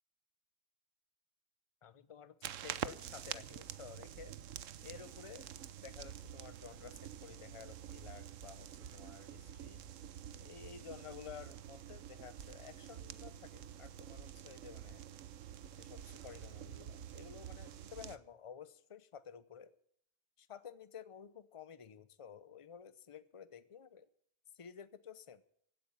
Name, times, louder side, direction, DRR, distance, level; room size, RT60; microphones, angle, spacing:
voice 1, 1.8-4.4 4.8-5.5 5.8-9.8 10.4-15.0 15.8-19.8 20.4-24.1 24.5-25.4, left 7 dB, 30° left, 14 dB, 0.6 m, -53 dB
sound 1, 2.4-18.2, right 10 dB, 70° right, 1.1 m, -48 dB
16.5 x 8.6 x 8.5 m, 0.67 s
omnidirectional pair, 1.4 m